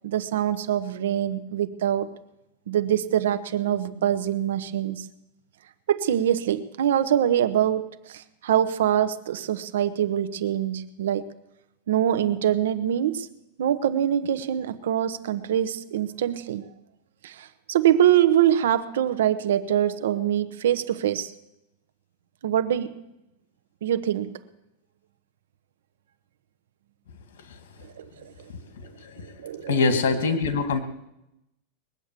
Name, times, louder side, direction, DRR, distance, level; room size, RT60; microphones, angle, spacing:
voice 1, 0.0-2.1 2.7-5.1 5.9-11.2 11.9-13.3 13.6-16.6 17.2-21.3 22.4-22.9 23.8-24.3 28.0-28.3 29.4-29.8, right 10 dB, 85° right, 12 dB, 1.0 m, -24 dB
voice 2, 28.8-29.4 29.7-30.8, left 4 dB, 90° left, 8 dB, 1.9 m, -24 dB
21.0 x 8.3 x 7.5 m, 0.89 s
supercardioid pair, 155°, 0 cm